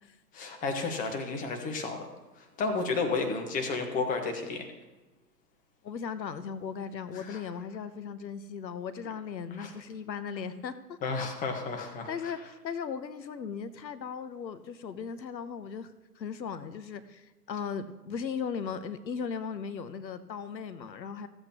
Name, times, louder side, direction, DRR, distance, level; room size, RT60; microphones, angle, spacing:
voice 1, 0.3-2.1 2.4-4.6 7.1-7.4 9.6-9.7 11.0-12.3, left 4 dB, 15° left, 4 dB, 1.2 m, -32 dB
voice 2, 5.8-11.0 12.1-21.3, left 6 dB, 90° left, 12 dB, 0.9 m, -37 dB
15.5 x 8.1 x 2.9 m, 1.1 s
hypercardioid pair, 135°, 50 cm